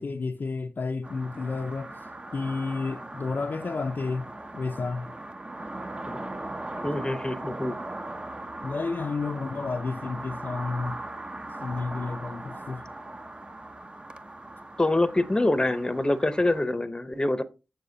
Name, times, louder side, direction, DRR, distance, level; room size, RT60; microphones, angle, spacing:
voice 1, 0.0-1.9 2.3-5.1 8.6-11.0 11.6-12.8, left 4 dB, 50° left, 0.5 m, -31 dB
sound 1, 1.0-16.6, right 2 dB, 25° right, 0.7 m, -39 dB
voice 2, 6.8-7.8 14.8-17.4, left 2 dB, 20° left, 0.7 m, -25 dB
6.9 x 5.8 x 2.7 m
cardioid pair, 45°, 4 cm